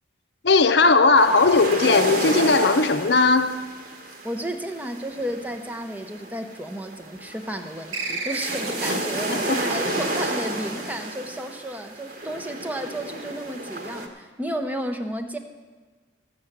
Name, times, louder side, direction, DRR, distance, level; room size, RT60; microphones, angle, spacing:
voice 1, 0.4-3.6 9.3-9.6, left 3 dB, 60° left, 0.7 m, -18 dB
sound 1, 1.2-14.1, right 2 dB, 45° right, 1.4 m, -31 dB
voice 2, 4.2-15.4, right 1 dB, 10° right, 0.7 m, -32 dB
sound 2, 7.9-9.1, right 3 dB, 80° right, 1.3 m, -31 dB
15.0 x 6.6 x 7.2 m
head